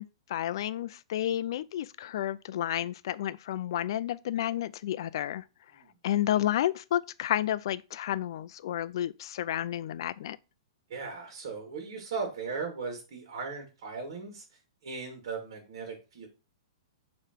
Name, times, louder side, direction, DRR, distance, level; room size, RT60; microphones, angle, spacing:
voice 1, 0.0-5.4 6.0-10.4, left 12 dB, 60° left, 0.4 m, -31 dB
voice 2, 10.9-14.4 14.8-16.3, right 4 dB, 60° right, 2.3 m, -37 dB
6.9 x 3.2 x 4.5 m
hypercardioid pair, 155°, 3 cm